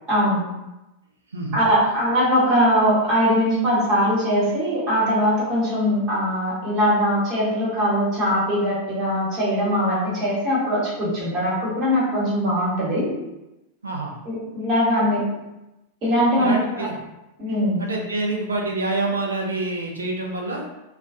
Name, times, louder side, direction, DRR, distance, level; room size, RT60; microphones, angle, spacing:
voice 1, 0.1-0.4 1.5-13.1 14.2-15.2 16.0-16.9 17.4-17.8, equal, 35° right, -7 dB, 1.2 m, -21 dB
voice 2, 13.8-14.2 16.4-16.9 17.8-20.6, right 2 dB, 75° right, 0 dB, 0.4 m, -26 dB
2.3 x 2.1 x 2.5 m, 0.97 s
figure-of-eight pair, 90°, 0 cm